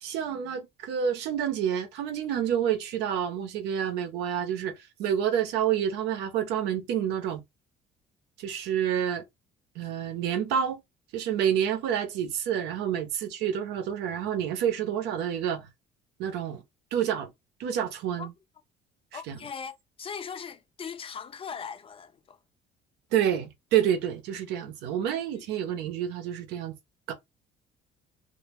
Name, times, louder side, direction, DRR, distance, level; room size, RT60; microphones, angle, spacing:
voice 1, 0.0-4.7 5.0-7.4 8.4-9.2 9.8-10.8 11.1-15.7 16.2-16.6 16.9-17.3 17.6-18.3 19.1-19.4 23.1-26.7 27.1-27.2, right 9 dB, 90° right, 0.7 m, -28 dB
voice 2, 19.1-22.4, left 6 dB, 35° left, 0.4 m, -39 dB
2.1 x 2.1 x 3.3 m
cardioid pair, 110°, 17 cm